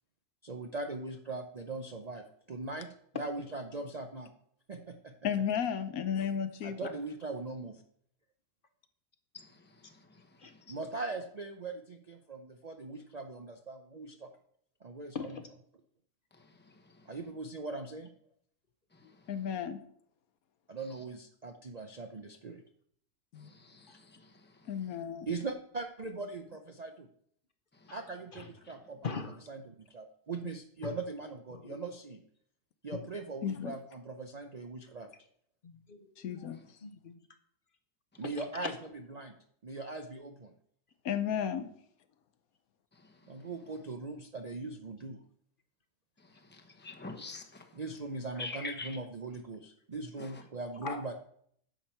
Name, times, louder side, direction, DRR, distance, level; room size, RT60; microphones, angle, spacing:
voice 1, 0.4-2.9 3.2-4.3 4.7-5.1 6.6-7.8 10.7-14.3 14.8-15.4 17.1-18.1 20.7-22.6 25.3-27.1 27.9-29.0 29.5-32.2 32.8-35.1 38.2-38.7 39.1-39.4 39.6-40.5 43.3-45.2 47.7-51.1, right 3 dB, 45° right, 0.5 m, -40 dB
voice 2, 5.2-6.8 19.3-19.8 23.3-23.5 24.7-25.3 33.4-33.7 36.2-36.6 41.0-41.7, left 8 dB, 75° left, 1.2 m, -33 dB
voice 3, 15.1-15.5 19.0-19.1 27.9-28.0 28.3-28.5 29.0-29.4 30.8-30.9 31.5-31.8 32.9-33.0 35.6-36.5 36.8-37.3 38.6-38.7 50.8-51.0, left 5 dB, 45° left, 0.8 m, -41 dB
voice 4, 23.4-24.5 46.5-47.6 48.4-49.0 50.2-50.3, left 3 dB, 10° left, 0.8 m, -44 dB
10.0 x 7.1 x 4.4 m
omnidirectional pair, 1.5 m